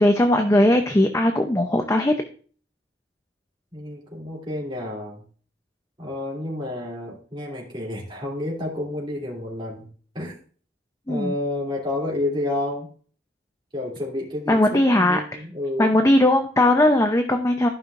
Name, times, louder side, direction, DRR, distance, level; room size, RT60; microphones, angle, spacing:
voice 1, 0.0-2.1 11.1-11.3 14.5-15.4 15.8-17.7, left 1 dB, 15° left, 5 dB, 0.6 m, -19 dB
voice 2, 3.7-5.2 6.0-9.9 10.1-10.3 11.1-12.9 13.7-15.9, left 1 dB, 25° right, -3 dB, 2.9 m, -30 dB
14.0 x 5.6 x 2.5 m, 0.43 s
head